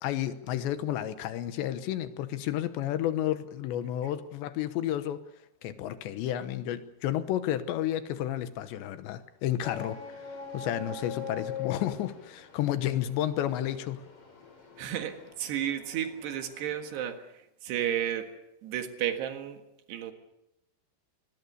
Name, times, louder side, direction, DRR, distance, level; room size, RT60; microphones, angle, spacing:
voice 1, 0.0-5.2 5.6-10.0 10.5-14.0, left 12 dB, 85° left, 3.3 m, -31 dB
sound 1, 9.6-17.0, left 6 dB, 35° left, 4.5 m, -43 dB
voice 2, 14.8-18.3 18.6-19.6 19.9-20.1, right 10 dB, 70° right, 3.6 m, -33 dB
24.5 x 21.0 x 6.8 m
omnidirectional pair, 5.2 m